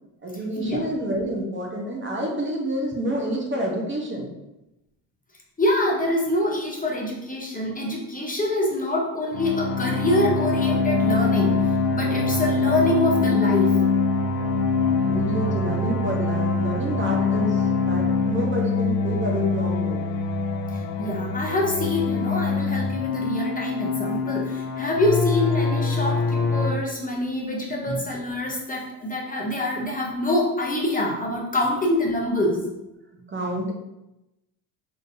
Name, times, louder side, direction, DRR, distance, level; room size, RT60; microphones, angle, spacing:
voice 1, 0.2-4.3 14.9-20.1 27.9-28.0 33.1-33.7, right 1 dB, 30° right, 0 dB, 0.7 m, -28 dB
voice 2, 5.6-13.8 20.7-32.7, left 1 dB, 20° left, -2 dB, 0.7 m, -25 dB
sound 1, 9.3-26.7, left 4 dB, 60° left, 0.6 m, -24 dB
3.8 x 2.6 x 2.6 m, 0.94 s
supercardioid pair, 80°, 42 cm